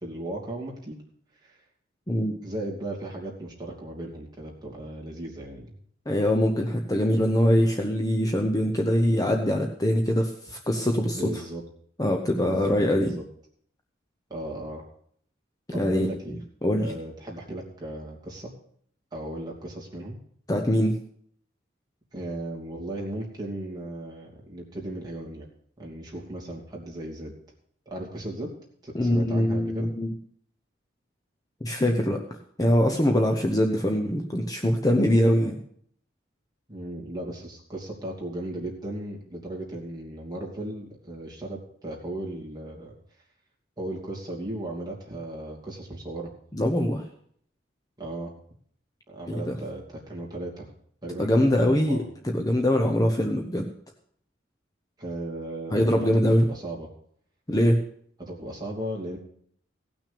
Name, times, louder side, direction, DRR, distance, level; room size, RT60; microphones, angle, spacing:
voice 1, 0.0-1.0 1.4-1.5 2.4-5.7 11.1-11.6 12.4-13.2 14.3-14.8 15.7-16.4 16.8-18.5 19.1-20.2 22.1-25.5 25.8-27.4 27.9-28.5 28.8-29.9 36.7-42.9 43.8-46.3 48.0-48.3 49.1-50.7 51.0-52.1 55.0-56.9 58.2-59.2, right 1 dB, 20° right, -3 dB, 2.8 m, -36 dB
voice 2, 6.1-11.2 12.0-13.1 15.7-16.1 16.6-16.9 20.5-21.0 28.9-30.1 31.6-32.2 32.6-35.6 46.5-47.0 49.3-49.6 51.2-53.7 55.7-56.5 57.5-57.8, left 1 dB, 20° left, 3 dB, 0.9 m, -23 dB
17.0 x 6.2 x 6.8 m, 0.63 s
head